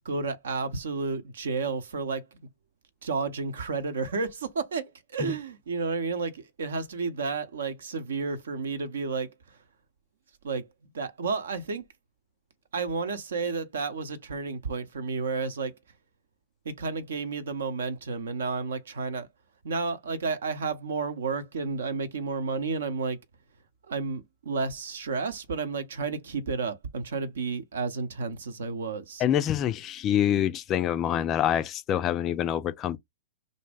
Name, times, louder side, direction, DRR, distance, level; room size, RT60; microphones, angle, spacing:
voice 1, 0.0-2.2 3.0-9.6 10.4-10.7 10.9-11.8 12.7-15.7 16.6-19.3 19.6-23.2 23.9-29.2, right 4 dB, 70° right, 0.7 m, -31 dB
voice 2, 29.2-33.0, left 10 dB, 30° left, 0.3 m, -26 dB
2.6 x 2.1 x 3.4 m
figure-of-eight pair, 110°, 0 cm